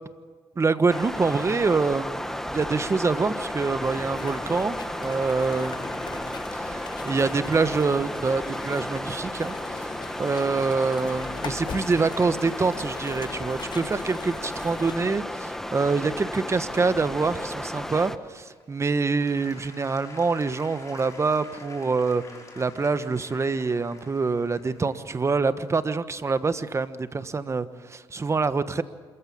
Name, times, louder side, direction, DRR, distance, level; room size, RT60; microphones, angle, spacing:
voice 1, 0.5-9.9 10.2-22.2 22.6-28.8, right 4 dB, 30° right, 12 dB, 1.3 m, -26 dB
sound 1, 0.9-18.2, left 1 dB, 5° left, 1.3 m, -33 dB
sound 2, 3.8-15.0, left 7 dB, 50° left, 0.9 m, -41 dB
Applause / Crowd, 18.2-27.1 27.7-27.8, left 3 dB, 35° left, 5.7 m, -48 dB
26.5 x 15.0 x 8.6 m, 1.5 s
supercardioid pair, 70°, 9 cm